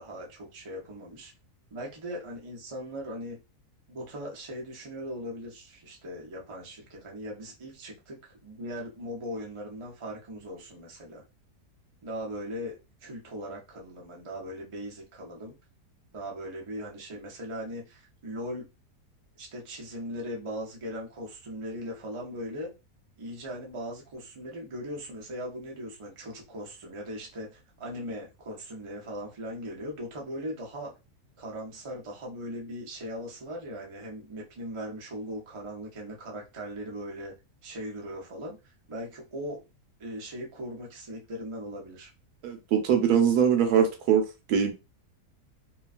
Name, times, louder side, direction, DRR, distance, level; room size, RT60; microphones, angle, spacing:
voice 1, 0.0-1.3 1.7-3.4 3.9-11.2 12.0-15.5 16.1-18.7 19.4-22.7 23.2-30.9 31.4-37.3 37.6-39.6 40.0-42.1, equal, 45° right, 0.3 m, -39 dB
voice 2, 42.4-44.7, right 8 dB, 75° right, 1.2 m, -23 dB
2.9 x 2.3 x 2.4 m
omnidirectional pair, 1.7 m